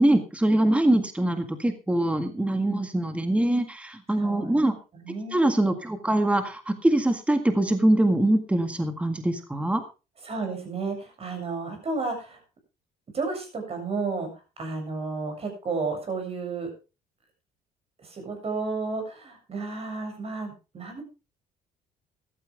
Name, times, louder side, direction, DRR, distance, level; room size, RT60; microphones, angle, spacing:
voice 1, 0.0-4.8 5.3-9.8, right 1 dB, 5° right, 7 dB, 1.8 m, -23 dB
voice 2, 4.2-4.6 4.9-5.6 10.2-12.4 13.1-14.3 14.6-16.7 18.0-21.0, right 4 dB, 35° right, 4 dB, 7.3 m, -32 dB
14.5 x 13.0 x 3.5 m, 0.30 s
cardioid pair, 110°, 17 cm